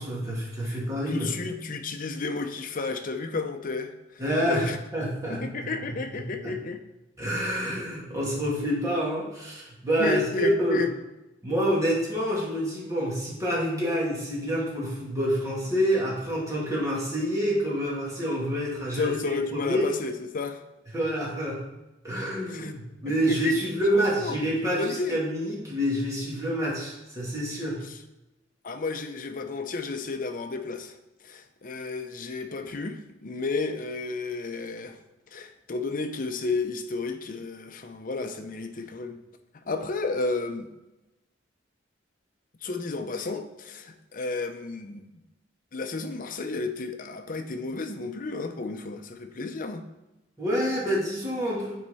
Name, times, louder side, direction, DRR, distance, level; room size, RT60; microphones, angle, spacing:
voice 1, 0.0-1.3 4.2-5.7 6.1-6.6 7.2-10.8 11.4-19.9 20.9-21.6 22.0-27.8 50.4-51.7, equal, 20° right, -5 dB, 2.5 m, -27 dB
voice 2, 1.1-4.2 4.5-4.8 5.3-6.8 10.0-10.9 19.0-20.6 22.5-22.8 23.1-23.6 23.9-25.2 28.6-30.9 31.2-35.0 35.3-39.2 39.6-40.7 42.6-45.1 45.7-49.9, left 3 dB, 45° left, 7 dB, 0.7 m, -32 dB
9.4 x 4.6 x 4.1 m, 0.99 s
head